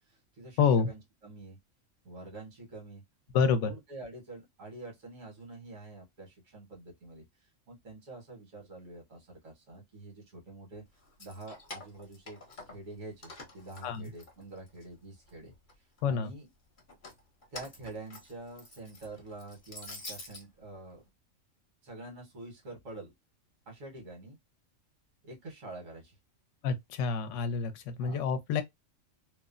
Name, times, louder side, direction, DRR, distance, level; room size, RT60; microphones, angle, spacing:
voice 1, 0.0-0.6 0.9-1.6 2.0-3.0 3.6-10.8 11.2-12.4 12.7-16.5 17.5-21.0 21.8-23.1 23.7-24.4 25.2-26.2 28.0-28.3, right 2 dB, 85° right, 1.5 m, -47 dB
voice 2, 0.6-0.9 3.3-3.7 13.8-14.1 16.0-16.3 26.6-28.6, left 6 dB, 75° left, 0.9 m, -28 dB
Keys jangling, 11.0-12.9 13.2-14.8 15.3-16.0 16.8-20.4, left 2 dB, 45° left, 0.9 m, -47 dB
3.0 x 2.0 x 2.4 m
omnidirectional pair, 1.3 m